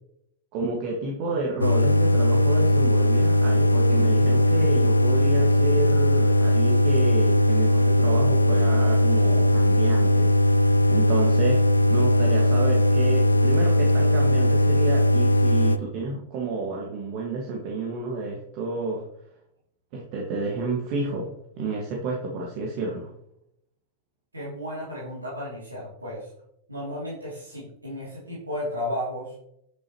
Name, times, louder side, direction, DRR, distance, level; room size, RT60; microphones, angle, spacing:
voice 1, 0.5-10.3 10.9-19.0 19.9-21.3 21.6-23.1, right 3 dB, 45° right, -1 dB, 1.8 m, -30 dB
Drone Dishwasher A, 1.6-15.8, left 1 dB, 80° left, 0.4 m, -19 dB
voice 2, 24.3-26.3 26.7-29.3, left 1 dB, 80° right, -6 dB, 2.8 m, -33 dB
9.7 x 7.0 x 3.0 m, 0.75 s
figure-of-eight pair, 90°, 0 cm